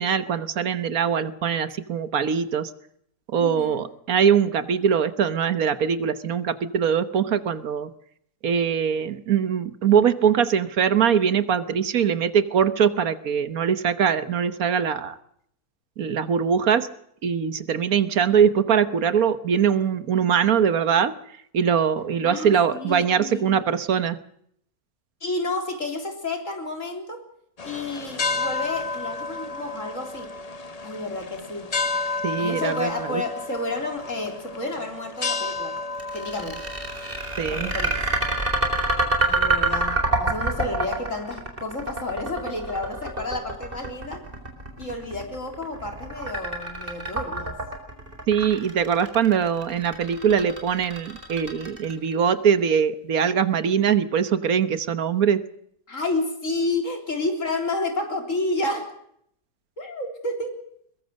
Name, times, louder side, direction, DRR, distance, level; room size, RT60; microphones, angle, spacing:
voice 1, 0.0-2.7 3.3-7.9 8.4-15.2 16.0-16.9 17.2-21.1 21.5-24.2 32.2-33.2 37.4-37.7 48.3-55.4, right 7 dB, 75° right, 13 dB, 1.6 m, -22 dB
voice 2, 3.4-3.9 22.2-23.6 25.2-27.3 27.6-30.3 30.8-31.7 32.4-35.8 36.1-36.7 37.5-37.9 39.3-44.3 44.8-47.6 55.9-58.9 59.8-60.6, left 2 dB, 60° left, 4 dB, 4.1 m, -30 dB
sound 1, 27.6-38.5, left 3 dB, 30° left, 0.9 m, -32 dB
sound 2, 36.0-52.1, right 2 dB, 35° right, 4.5 m, -26 dB
22.0 x 21.5 x 6.5 m, 0.71 s
omnidirectional pair, 1.5 m